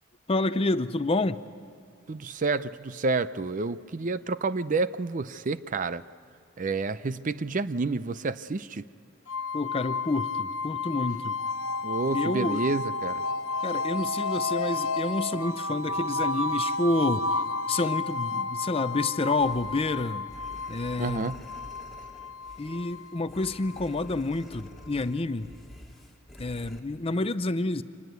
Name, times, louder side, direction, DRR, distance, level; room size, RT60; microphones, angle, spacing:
voice 1, 0.3-1.4 9.5-11.4 12.1-12.6 13.6-17.3 17.7-20.2 20.7-21.3 22.6-25.5 26.4-27.8, left 2 dB, 25° left, 12 dB, 0.6 m, -28 dB
voice 2, 2.1-6.0 6.6-8.8 11.8-13.2 21.0-21.4, right 3 dB, 35° right, 14 dB, 0.5 m, -29 dB
sound 1, 9.3-24.2, left 3 dB, 65° left, 0.9 m, -31 dB
sound 2, 19.4-26.8, left 1 dB, ahead, 2.2 m, -48 dB
26.0 x 20.0 x 8.1 m, 2.4 s
head